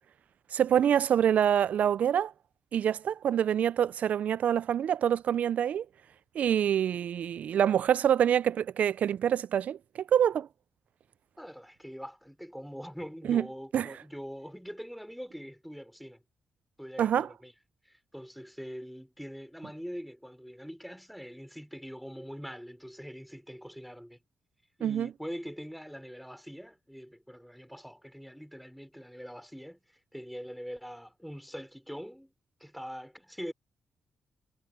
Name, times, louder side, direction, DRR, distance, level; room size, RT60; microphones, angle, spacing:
voice 1, 0.5-2.3 2.7-5.9 6.4-10.5 13.3-13.4 13.7-13.9 17.0-17.3 24.8-25.1, right 9 dB, 75° right, 0.3 m, -26 dB
voice 2, 11.4-16.2 16.8-17.5 17.8-24.2 24.8-32.3 32.6-33.5, equal, ahead, 3.4 m, -43 dB
cardioid pair, 65°, 3 cm